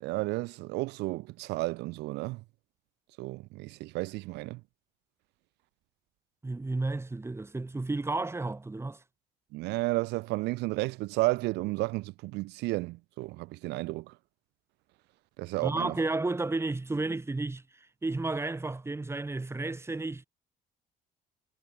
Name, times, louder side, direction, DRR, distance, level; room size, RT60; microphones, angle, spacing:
voice 1, 0.0-2.4 3.2-4.6 9.5-14.1 15.4-15.9, right 21 dB, 90° right, 0.9 m, -32 dB
voice 2, 6.4-9.0 15.6-17.6 18.0-20.3, right 2 dB, 15° right, 6.7 m, -32 dB
cardioid pair, 110°, 17 cm